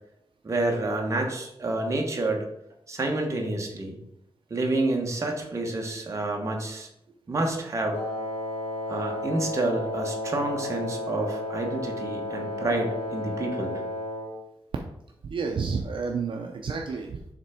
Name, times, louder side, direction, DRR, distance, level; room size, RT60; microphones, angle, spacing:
voice 1, 0.4-2.5 2.9-4.0 4.5-6.9 7.3-8.0 8.9-13.8, right 2 dB, 30° right, 1 dB, 1.1 m, -28 dB
Wind instrument woodwind instrument, 7.9-14.4, left 1 dB, 85° left, 1.0 m, -33 dB
voice 2, 15.2-17.3, right 5 dB, 55° right, 2 dB, 0.6 m, -30 dB
7.2 x 3.4 x 4.9 m, 0.80 s
wide cardioid pair, 175°, 10 cm